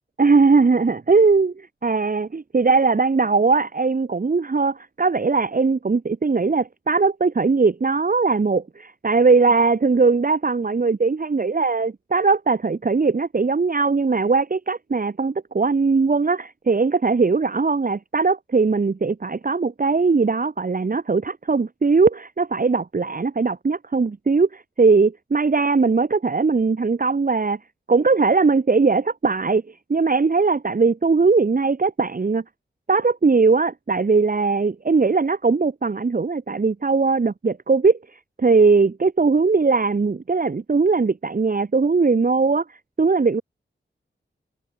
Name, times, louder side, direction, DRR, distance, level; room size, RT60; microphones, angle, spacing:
voice 1, 0.2-27.6 27.9-32.4 32.9-43.4, right 4 dB, 40° right, 1.1 m, -20 dB
cardioid pair, 45°, 21 cm